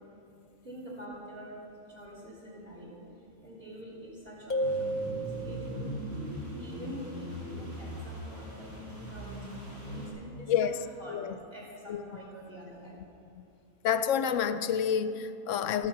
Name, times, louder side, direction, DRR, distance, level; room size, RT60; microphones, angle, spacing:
voice 1, 0.6-1.5 1.9-2.9 3.4-5.9 6.6-10.7 11.0-11.2 11.5-13.0 15.4-15.7, equal, 40° right, 3.3 m, -46 dB
sound 1, 4.5-6.0, right 1 dB, 35° left, 0.9 m, -32 dB
sound 2, 4.6-10.1, equal, 60° right, 4.3 m, -40 dB
voice 2, 10.5-10.8 11.1-11.4 11.9-12.0 13.3-13.5 13.8-15.9, left 8 dB, 70° left, 0.8 m, -28 dB
13.0 x 13.0 x 5.9 m
omnidirectional pair, 1.5 m